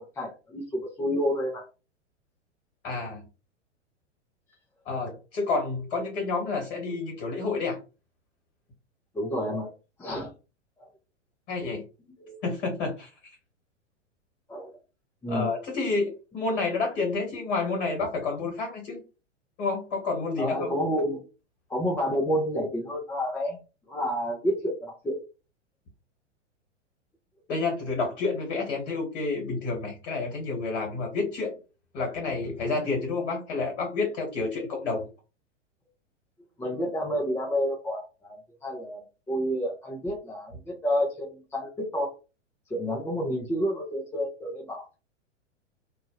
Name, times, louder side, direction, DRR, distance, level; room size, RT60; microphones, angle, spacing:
voice 1, 0.0-1.6 9.1-9.7 10.0-10.3 10.8-10.9 12.2-12.4 14.5-14.7 15.2-15.5 20.4-21.2 21.7-23.6 23.9-25.2 36.6-38.3 38.6-39.0 39.3-42.1 42.7-45.0, equal, 5° left, -2 dB, 0.5 m, -29 dB
voice 2, 2.8-3.2 4.9-7.8 11.5-11.8 12.4-13.4 15.3-19.0 19.6-20.7 27.5-31.5 31.9-35.1, left 3 dB, 60° left, 1 dB, 1.8 m, -29 dB
3.1 x 2.2 x 3.0 m, 0.31 s
figure-of-eight pair, 100°, 37 cm